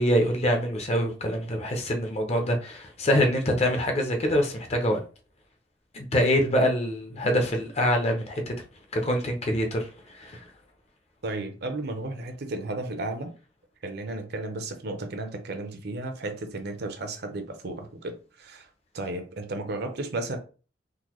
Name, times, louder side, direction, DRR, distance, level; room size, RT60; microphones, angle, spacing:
voice 1, 0.0-5.0 5.9-8.5 8.9-10.4, equal, 35° left, 0.7 m, -25 dB
voice 2, 11.2-13.3 13.8-18.7 18.9-20.4, right 2 dB, 60° right, 0.7 m, -34 dB
3.8 x 2.2 x 3.0 m
head